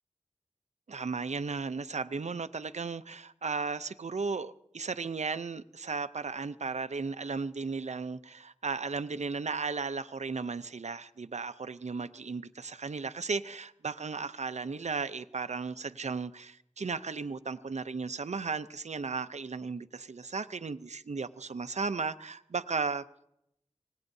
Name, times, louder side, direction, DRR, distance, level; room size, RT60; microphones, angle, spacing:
voice 1, 0.9-23.0, right 4 dB, 75° right, 0.6 m, -35 dB
25.5 x 19.0 x 2.7 m
wide cardioid pair, 55°, 12 cm